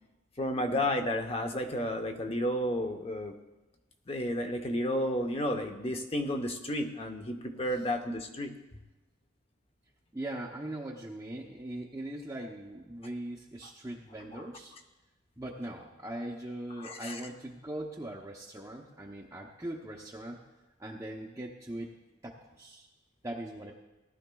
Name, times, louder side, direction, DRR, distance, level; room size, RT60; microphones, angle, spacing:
voice 1, 0.4-3.3 4.1-8.5 16.8-17.2, left 1 dB, 30° left, 5 dB, 0.8 m, -32 dB
voice 2, 10.1-14.8 15.4-20.4 20.8-22.0 22.2-22.9 23.2-23.7, right 1 dB, 15° right, -2 dB, 0.7 m, -40 dB
18.5 x 11.5 x 2.3 m, 1.1 s
head